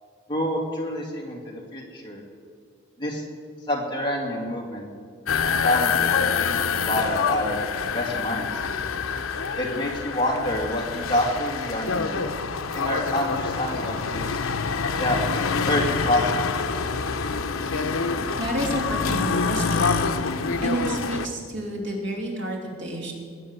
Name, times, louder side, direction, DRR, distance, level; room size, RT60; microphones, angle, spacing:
voice 1, 0.3-2.2 3.0-3.2 3.7-4.9 5.3-7.6 7.9-8.5 9.6-12.3 12.7-14.4 14.9-15.2 15.7-16.4, left 1 dB, 20° left, -2 dB, 2.4 m, -27 dB
sound 1, 5.3-21.3, left 5 dB, 80° left, 0.8 m, -26 dB
voice 2, 18.4-20.1 20.6-23.1, right 1 dB, 60° right, -1 dB, 3.0 m, -30 dB
20.5 x 7.9 x 6.8 m, 2.2 s
head